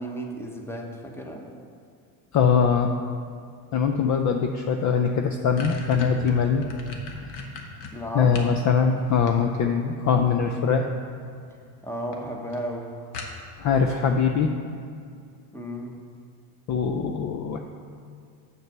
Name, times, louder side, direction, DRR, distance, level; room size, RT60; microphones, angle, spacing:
voice 1, 0.0-1.5 7.9-8.4 11.8-12.9 15.5-16.0, equal, 5° left, 2 dB, 1.0 m, -34 dB
voice 2, 2.3-2.9 3.7-6.6 8.1-10.8 13.6-14.5 16.7-17.6, left 6 dB, 35° left, 5 dB, 0.5 m, -22 dB
sound 1, 4.7-4.8 5.1-8.6 9.0-9.8 10.9-11.3 11.7-11.8 12.1-12.2 12.5-12.6 13.1-13.7, left 3 dB, 55° left, 1.4 m, -37 dB
6.6 x 6.1 x 6.6 m, 2.3 s
supercardioid pair, 100°, 49 cm